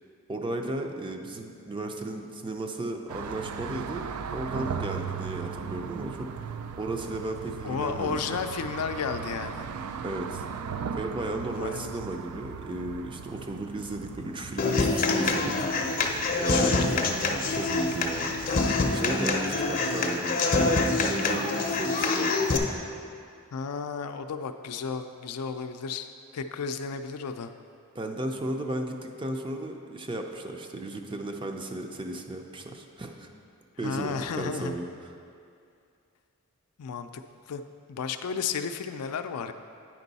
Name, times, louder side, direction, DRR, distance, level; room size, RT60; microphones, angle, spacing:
voice 1, 0.3-4.0 4.3-8.4 10.0-10.4 10.9-15.9 16.4-17.0 17.5-18.4 18.9-22.6 27.9-33.3 33.8-34.9, right 2 dB, 20° right, 4 dB, 0.5 m, -35 dB
sound 1, 3.1-18.8, right 6 dB, 80° right, 0.4 m, -38 dB
voice 2, 7.6-9.7 11.6-12.0 16.5-17.2 23.5-26.1 26.3-27.5 33.8-34.7 36.8-37.2 37.5-37.6 37.9-39.5, left 5 dB, 85° left, 8 dB, 0.4 m, -33 dB
Human voice / Acoustic guitar, 14.6-22.6, left 3 dB, 40° left, 0.6 m, -26 dB
8.9 x 5.3 x 4.0 m, 2.4 s
head